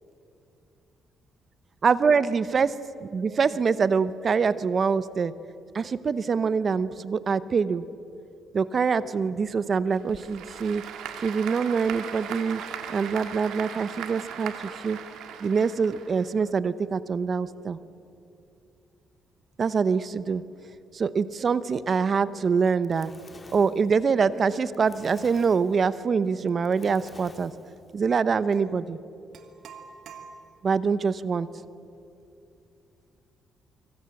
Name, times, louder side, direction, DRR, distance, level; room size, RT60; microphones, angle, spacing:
voice 1, 1.8-2.7 3.0-5.3 5.7-7.9 8.5-10.8 11.2-12.6 12.9-15.0 15.4-17.8 19.6-20.4 20.9-23.1 23.5-27.5 27.9-29.0 30.6-31.5, right 5 dB, 45° right, 15 dB, 0.9 m, -24 dB
Applause / Crowd, 9.9-16.5, right 8 dB, 85° right, 2.5 m, -38 dB
Fire, 22.5-27.9, left 3 dB, 25° left, 2.5 m, -51 dB
sound 1, 28.5-28.7 29.3-30.8, right 5 dB, 65° right, 2.5 m, -47 dB
25.5 x 25.0 x 7.8 m, 2.6 s
cardioid pair, 100°, 0 cm